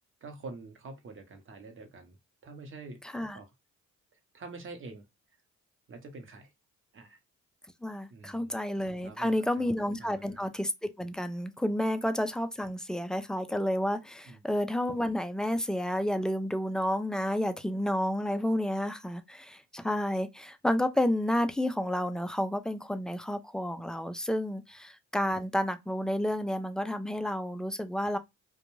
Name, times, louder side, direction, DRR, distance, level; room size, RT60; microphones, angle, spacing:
voice 1, 0.2-2.2 2.4-3.0 3.3-3.5 4.3-5.1 5.9-6.5 6.9-7.2 8.1-8.6 9.0-9.7 10.0-10.4 14.3-14.4 28.0-28.1, right 3 dB, 40° right, 0.9 m, -46 dB
voice 2, 3.0-3.4 7.8-28.2, left 1 dB, ahead, 0.3 m, -30 dB
2.5 x 2.2 x 3.0 m
cardioid pair, 90°, 30 cm